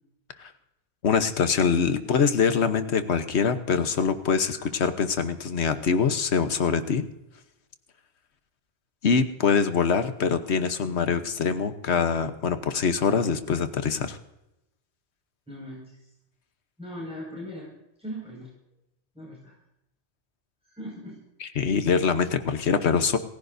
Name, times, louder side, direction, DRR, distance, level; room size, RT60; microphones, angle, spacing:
voice 1, 1.0-7.1 9.0-14.2 21.4-23.2, left 6 dB, 80° left, 9 dB, 1.3 m, -24 dB
voice 2, 15.5-16.1 16.8-17.7 18.0-18.5 19.1-19.5 20.6-21.2, equal, 5° right, -5 dB, 5.7 m, -39 dB
27.5 x 15.5 x 2.7 m, 0.90 s
omnidirectional pair, 1.1 m